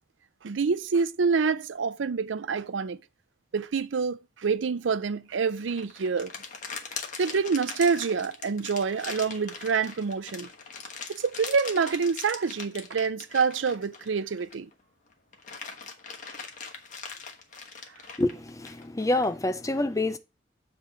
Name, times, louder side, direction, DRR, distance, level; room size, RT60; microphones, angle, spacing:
voice 1, 0.4-3.0 3.5-6.3 7.2-10.5 11.1-14.7, right 5 dB, 90° right, 0.5 m, -27 dB
sound 1, 5.5-14.7 15.1-19.3, left 5 dB, 45° left, 1.2 m, -41 dB
voice 2, 18.2-20.2, left 2 dB, 20° left, 0.6 m, -27 dB
7.6 x 3.4 x 6.0 m
head